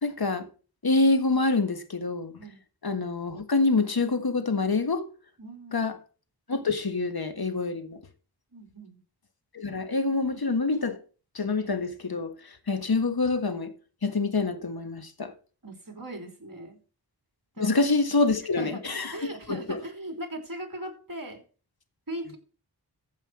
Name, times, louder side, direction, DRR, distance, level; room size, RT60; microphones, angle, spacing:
voice 1, 0.0-0.5 0.8-2.4 2.8-5.1 5.7-6.0 6.5-8.0 9.5-11.0 11.3-13.7 14.0-15.3 17.6-19.8, left 3 dB, 55° left, 1.5 m, -26 dB
voice 2, 5.4-5.9 8.5-9.0 15.6-16.8 17.5-17.8 18.5-21.4 22.1-22.4, right 1 dB, 45° right, 3.4 m, -39 dB
14.5 x 5.7 x 4.7 m
wide cardioid pair, 45°, 44 cm